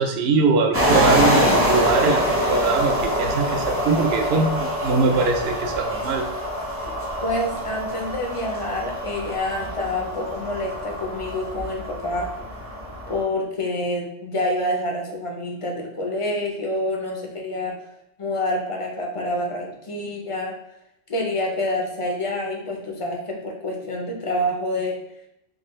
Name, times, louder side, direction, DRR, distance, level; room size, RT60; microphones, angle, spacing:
voice 1, 0.0-6.3, right 4 dB, 65° right, 5 dB, 0.7 m, -22 dB
sound 1, 0.7-13.2, equal, 15° right, 0.6 m, -25 dB
voice 2, 7.2-12.3 13.1-17.9 18.2-20.6 21.1-25.0, left 1 dB, 40° left, 0 dB, 0.5 m, -27 dB
3.8 x 2.6 x 3.0 m, 0.83 s
omnidirectional pair, 1.3 m